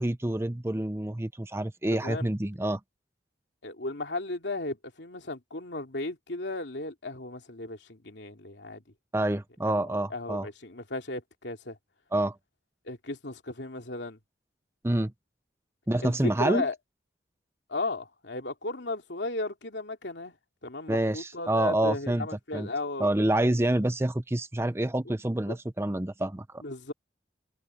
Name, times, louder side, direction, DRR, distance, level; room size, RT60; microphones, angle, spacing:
voice 1, 0.0-2.8 9.1-10.5 12.1-12.3 14.8-15.1 15.9-16.7 20.9-22.3 22.5-22.7 23.0-26.4, right 1 dB, 15° right, 0.6 m, -27 dB
voice 2, 1.9-2.3 3.6-8.8 9.6-11.8 12.8-14.2 16.0-16.8 17.7-20.4 20.6-23.7 25.5-25.6 26.6-26.9, left 2 dB, 75° left, 2.6 m, -35 dB
head